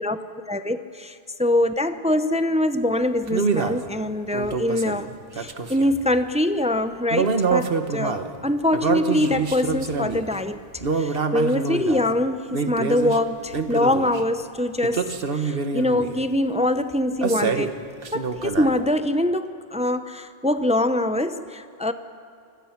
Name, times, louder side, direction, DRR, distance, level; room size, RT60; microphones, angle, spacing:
voice 1, 0.5-5.1 5.3-10.6 10.9-17.7 18.1-21.9, left 1 dB, 10° right, 10 dB, 0.6 m, -24 dB
sound 1, 3.3-3.8 4.3-6.0 7.1-8.3 8.7-10.3 10.8-12.1 12.5-13.2 13.5-14.2 14.8-16.2 17.2-17.8 18.0-18.8, right 5 dB, 65° right, 1.5 m, -26 dB
27.5 x 21.0 x 5.9 m, 2.7 s
omnidirectional pair, 1.0 m